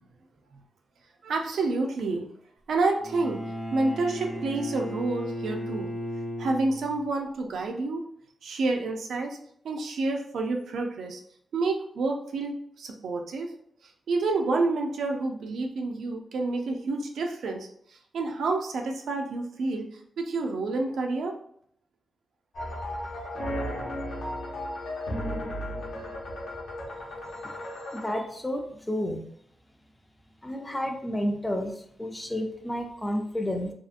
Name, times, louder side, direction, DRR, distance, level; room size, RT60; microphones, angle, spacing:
voice 1, 1.2-2.3 2.7-3.4 3.7-5.9 6.4-8.0 8.4-9.4 9.6-11.2 11.5-13.5 14.1-17.7 18.1-19.8 20.2-21.3, right 3 dB, 80° right, 3 dB, 0.4 m, -28 dB
Bowed string instrument, 3.0-7.1, equal, 60° left, 0.7 m, -35 dB
sound 1, 22.5-28.1, left 1 dB, 90° left, 0.7 m, -34 dB
voice 2, 27.9-29.2 30.4-33.7, left 1 dB, 10° left, 3 dB, 0.3 m, -31 dB
2.7 x 2.4 x 2.4 m, 0.67 s
wide cardioid pair, 155°, 0 cm